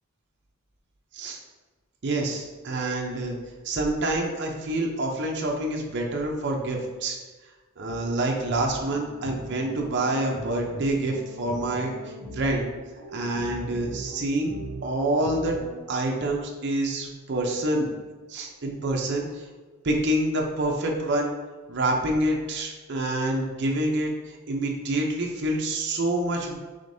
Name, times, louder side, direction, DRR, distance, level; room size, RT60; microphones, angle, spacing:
voice 1, 2.0-3.4 3.6-7.2 7.8-12.7 13.1-14.5 14.8-15.6 15.9-17.9 18.3-19.5 19.8-21.3 21.7-26.5, right 1 dB, 55° right, 0 dB, 0.6 m, -27 dB
sound 1, 7.9-15.8, right 2 dB, 5° left, 1.3 m, -40 dB
5.0 x 3.5 x 2.6 m, 1.3 s
head